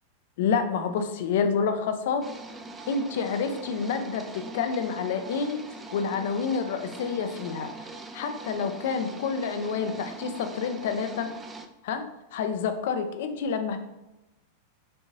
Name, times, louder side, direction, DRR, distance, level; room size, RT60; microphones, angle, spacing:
voice 1, 0.4-2.3 2.9-5.6 5.9-7.9 8.1-11.3 11.8-13.8, left 5 dB, 55° left, 7 dB, 0.5 m, -28 dB
sound 1, 2.2-11.7, right 2 dB, 15° right, 0.4 m, -42 dB
5.4 x 2.7 x 2.7 m, 0.96 s
figure-of-eight pair, 90°, 0 cm